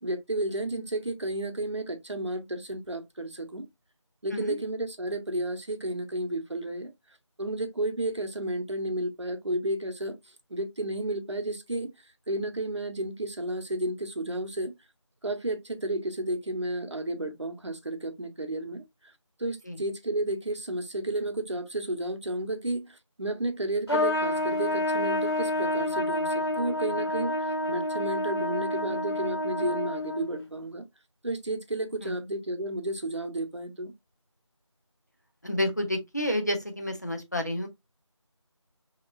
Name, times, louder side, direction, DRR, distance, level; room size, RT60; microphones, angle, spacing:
voice 1, 0.0-3.7 4.2-6.9 7.4-10.2 10.5-11.9 12.3-14.7 15.2-18.8 19.4-30.8 31.2-33.9, right 1 dB, 60° right, 0.8 m, -32 dB
Trumpet, 23.9-30.4, left 1 dB, 50° left, 1.5 m, -28 dB
voice 2, 35.4-37.7, left 1 dB, 35° left, 0.6 m, -30 dB
3.7 x 2.9 x 2.5 m
figure-of-eight pair, 170°, 16 cm